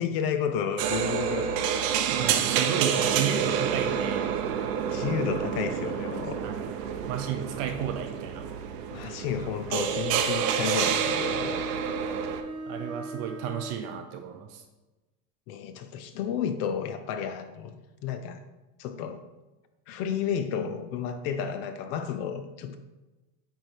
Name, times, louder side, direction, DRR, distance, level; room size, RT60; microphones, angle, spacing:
voice 1, 0.0-1.7 4.8-6.4 8.9-11.6 15.5-18.4 18.8-19.2 19.9-22.8, left 8 dB, 40° left, 9 dB, 0.4 m, -32 dB
sound 1, 0.8-12.4, right 8 dB, 80° right, 0.9 m, -28 dB
voice 2, 2.1-4.3 6.4-6.7 7.1-8.5 12.7-14.6, right 8 dB, 35° right, 6 dB, 0.4 m, -33 dB
Bowed string instrument, 9.9-13.9, right 1 dB, 10° right, 1.2 m, -38 dB
8.8 x 3.3 x 4.5 m, 1.1 s
supercardioid pair, 150°, 47 cm